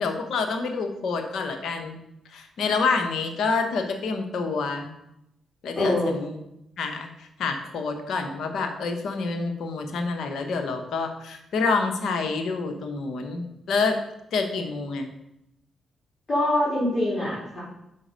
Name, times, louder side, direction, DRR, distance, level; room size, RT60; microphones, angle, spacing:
voice 1, 0.0-2.0 2.3-4.9 5.6-6.4 6.8-14.0 14.3-15.1, left 4 dB, 70° left, 5 dB, 1.0 m, -27 dB
voice 2, 5.8-6.1 16.3-17.6, left 1 dB, 40° left, -8 dB, 3.0 m, -24 dB
5.9 x 5.1 x 5.2 m, 0.83 s
supercardioid pair, 50°, 0 cm